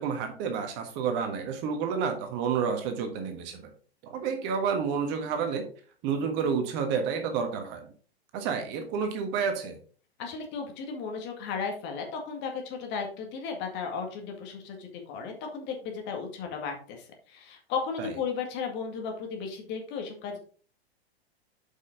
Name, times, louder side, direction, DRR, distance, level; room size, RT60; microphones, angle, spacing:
voice 1, 0.0-3.6 4.0-5.6 6.0-7.9 8.3-9.8 18.0-18.1, right 6 dB, 35° right, 6 dB, 1.5 m, -30 dB
voice 2, 10.2-20.4, left 5 dB, 35° left, 3 dB, 2.0 m, -35 dB
8.1 x 5.6 x 3.8 m, 0.43 s
figure-of-eight pair, 100°, 31 cm